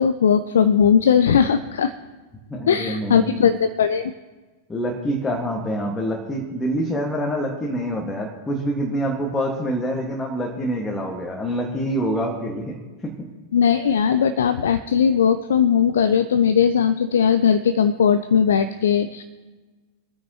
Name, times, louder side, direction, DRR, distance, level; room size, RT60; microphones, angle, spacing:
voice 1, 0.0-1.9 2.7-4.1 13.5-19.2, left 7 dB, 65° left, 11 dB, 0.5 m, -18 dB
voice 2, 2.5-3.3 4.7-12.8 13.0-13.1, equal, 15° left, -1 dB, 1.9 m, -26 dB
23.5 x 9.4 x 3.0 m, 1.3 s
figure-of-eight pair, 90°, 0 cm